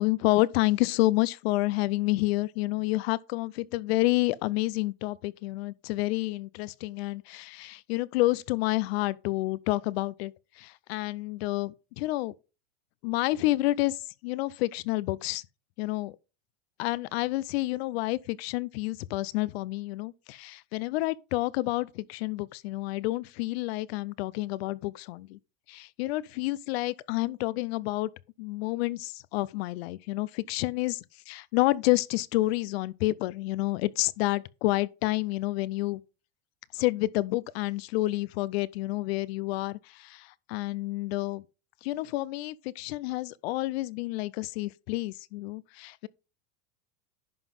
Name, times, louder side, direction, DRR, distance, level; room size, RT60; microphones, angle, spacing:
voice 1, 0.0-12.3 13.0-15.4 15.8-16.1 16.8-25.4 25.7-28.1 28.4-36.0 36.7-41.4 41.8-46.1, left 19 dB, 55° left, 0.5 m, -29 dB
11.0 x 3.9 x 5.3 m
supercardioid pair, 165°, 37 cm